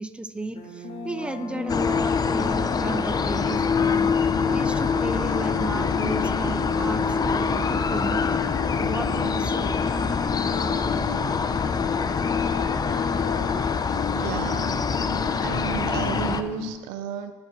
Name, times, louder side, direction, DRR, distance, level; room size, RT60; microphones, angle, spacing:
voice 1, 0.0-4.1 4.5-8.2 8.8-9.7, right 2 dB, 10° right, 10 dB, 0.6 m, -33 dB
sound 1, 0.5-16.7, left 4 dB, 50° left, 1.2 m, -35 dB
sound 2, 1.7-16.4, left 5 dB, 30° left, 0.5 m, -25 dB
voice 2, 14.1-14.7 15.4-17.3, right 9 dB, 75° right, 10 dB, 0.5 m, -33 dB
12.0 x 5.8 x 2.9 m, 1.4 s
hypercardioid pair, 60°, 13 cm